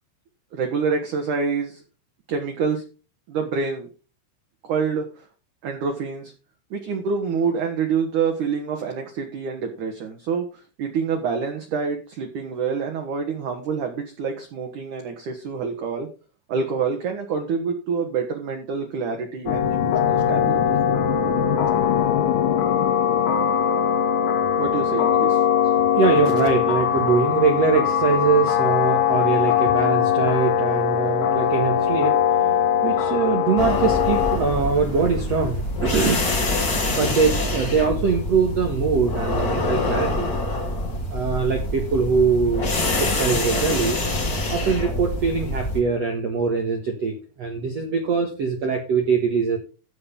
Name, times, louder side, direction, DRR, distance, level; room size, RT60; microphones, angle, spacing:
voice 1, 0.5-1.8 2.3-2.8 3.3-3.9 4.7-5.2 5.6-6.3 6.7-16.1 16.5-20.6 24.6-25.5, right 5 dB, 60° right, 3 dB, 2.2 m, -27 dB
sound 1, 19.5-34.4, left 8 dB, 75° left, 3.6 m, -21 dB
voice 2, 25.6-36.4 36.9-40.3 41.1-42.7 43.0-44.2 44.5-49.6, right 5 dB, 75° right, 3 dB, 1.5 m, -23 dB
sound 2, 33.6-45.8, left 2 dB, 40° left, 1.2 m, -25 dB
14.5 x 5.4 x 5.4 m, 0.35 s
omnidirectional pair, 5.5 m